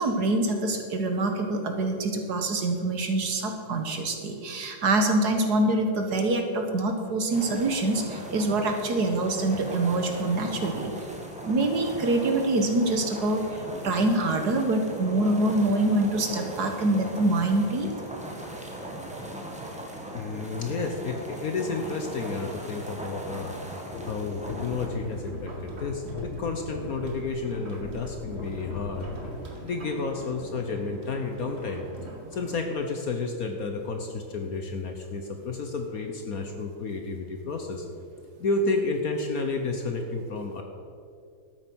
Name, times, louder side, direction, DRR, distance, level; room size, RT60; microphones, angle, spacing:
voice 1, 0.0-10.9 11.4-13.4 13.8-17.9, right 2 dB, 55° right, 4 dB, 1.6 m, -25 dB
sound 1, 7.3-24.9, right 1 dB, 5° right, 1.4 m, -39 dB
voice 2, 20.1-23.5 24.1-29.1 29.6-31.8 32.3-37.9 38.4-40.6, left 3 dB, 55° left, 4 dB, 1.2 m, -31 dB
sound 2, 23.9-29.5 30.4-30.5, left 5 dB, 90° left, 1.9 m, -40 dB
sound 3, 24.5-32.6, right 3 dB, 35° right, 1.7 m, -43 dB
12.0 x 8.9 x 6.2 m, 2.3 s
omnidirectional pair, 2.2 m